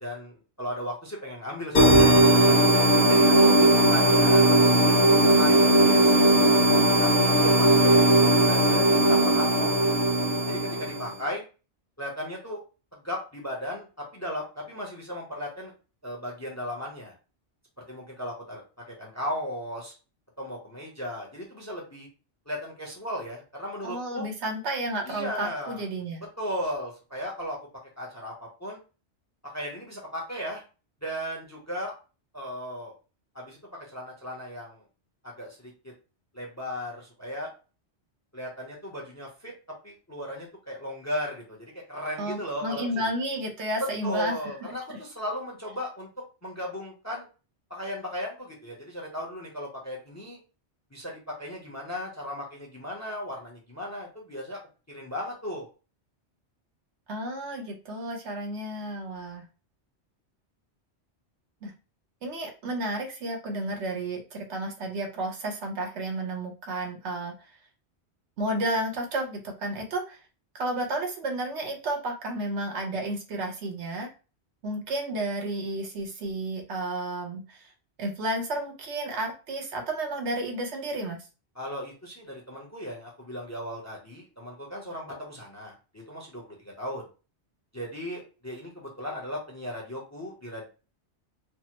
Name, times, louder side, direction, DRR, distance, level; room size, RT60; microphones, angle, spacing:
voice 1, 0.0-4.5 4.7-6.4 7.0-8.1 8.4-10.0 10.5-11.4 12.0-12.6 12.9-15.7 16.0-17.1 17.9-18.6 18.9-19.9 20.4-22.1 22.5-24.3 25.1-25.8 26.4-27.6 28.0-28.8 29.4-30.6 31.0-31.9 32.3-32.9 33.3-33.6 33.9-34.8 35.2-35.9 36.3-37.5 38.3-39.5 39.8-43.0 43.8-46.1 46.4-47.3 47.7-50.4 50.9-54.6 54.9-55.7 81.6-87.0 87.7-90.7, equal, 20° left, 0 dB, 0.6 m, -36 dB
sound 1, 1.7-11.1, right 1 dB, 55° left, 0.8 m, -19 dB
voice 2, 23.8-26.2 42.2-44.4 44.9-45.0 57.1-59.5 61.6-61.7 62.2-67.3 68.4-70.2 70.5-74.1 74.6-77.7 78.0-81.2, right 1 dB, 80° right, 1 dB, 1.1 m, -32 dB
3.3 x 2.0 x 2.9 m, 0.33 s
omnidirectional pair, 1.1 m